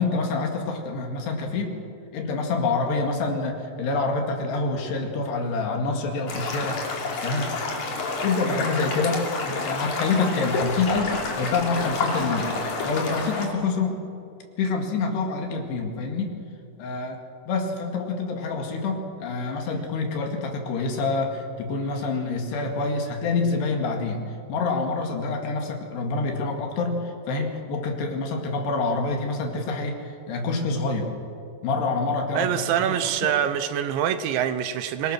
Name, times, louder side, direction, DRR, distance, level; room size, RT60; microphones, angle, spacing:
voice 1, 0.0-1.7 2.1-6.8 7.2-7.5 8.2-14.0 14.6-16.4 16.8-17.2 17.5-24.2 24.5-31.1 31.6-33.4, left 3 dB, 65° left, 3 dB, 4.0 m, -27 dB
sound 1, 6.3-13.5, left 3 dB, 45° left, 3.6 m, -29 dB
voice 2, 32.3-35.1, right 9 dB, 80° right, 11 dB, 3.0 m, -25 dB
26.5 x 20.5 x 6.1 m, 2.5 s
omnidirectional pair, 5.5 m